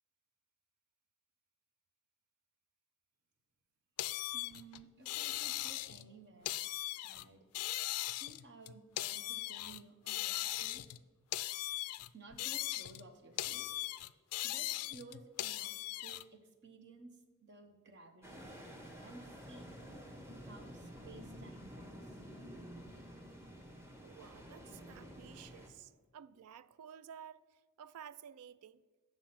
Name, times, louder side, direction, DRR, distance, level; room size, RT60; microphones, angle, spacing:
sound 1, 4.0-6.1 6.4-7.2 7.5-9.8 10.1-11.0 11.3-13.1 13.4-16.2, left 16 dB, 85° left, 0.3 m, -39 dB
voice 1, 4.3-6.5 7.0-7.5 8.2-10.8 12.1-13.7 14.4-18.5 19.0-19.7 20.4-22.2, right 3 dB, 50° right, 0.9 m, -56 dB
sound 2, 18.2-25.7, equal, 10° right, 1.1 m, -51 dB
voice 2, 24.0-28.8, right 8 dB, 85° right, 0.3 m, -53 dB
8.1 x 6.3 x 5.8 m
head